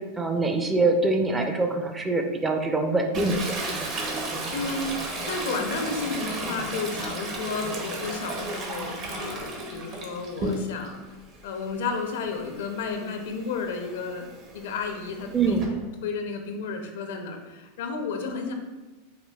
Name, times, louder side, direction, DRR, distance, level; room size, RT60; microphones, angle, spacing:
voice 1, 0.0-3.6 15.3-15.7, right 3 dB, 15° right, 4 dB, 0.4 m, -24 dB
Toilet flush, 3.1-11.0 11.4-15.7, right 2 dB, 40° right, 0.7 m, -34 dB
voice 2, 4.5-11.0 11.4-18.5, left 4 dB, 75° left, 4 dB, 0.5 m, -32 dB
4.9 x 2.3 x 2.3 m, 1.2 s
hypercardioid pair, 115°, 0 cm